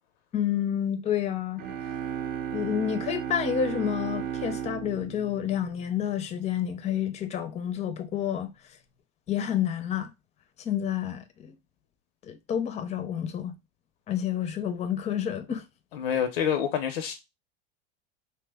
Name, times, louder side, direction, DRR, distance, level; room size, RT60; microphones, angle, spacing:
voice 1, 0.3-1.6 2.5-8.5 9.3-10.1 10.6-11.5 12.3-13.5 14.1-15.6, left 9 dB, 25° left, 0.4 m, -29 dB
sound 1, 1.6-6.3, right 9 dB, 35° right, 0.6 m, -35 dB
voice 2, 15.9-17.1, left 8 dB, 85° left, 0.5 m, -27 dB
2.9 x 2.0 x 3.3 m
supercardioid pair, 115°, 29 cm